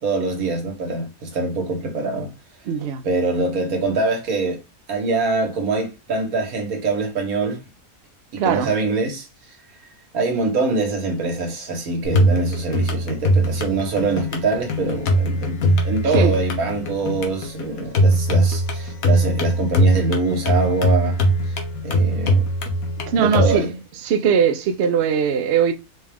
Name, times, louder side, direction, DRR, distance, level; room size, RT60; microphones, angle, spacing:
voice 1, 0.0-2.3 3.0-4.6 4.9-7.6 8.3-9.3 10.1-21.6 21.8-22.5 23.2-23.7, right 3 dB, 75° right, 1.6 m, -24 dB
voice 2, 2.7-3.0 8.4-8.7 16.1-16.3 23.1-23.7 24.0-25.7, right 7 dB, 60° right, 0.7 m, -20 dB
sound 1, 12.0-23.5, equal, 80° left, 1.3 m, -21 dB
4.1 x 2.4 x 3.3 m
omnidirectional pair, 1.5 m